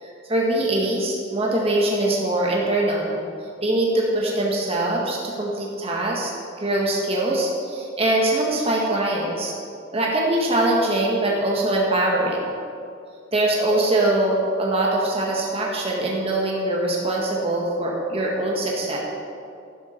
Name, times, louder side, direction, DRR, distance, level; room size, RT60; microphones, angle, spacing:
voice 1, 0.0-3.2 3.6-6.3 6.6-9.5 9.9-12.5 13.3-19.0, right 1 dB, 30° right, -3 dB, 1.7 m, -22 dB
11.5 x 11.0 x 4.5 m, 2.4 s
head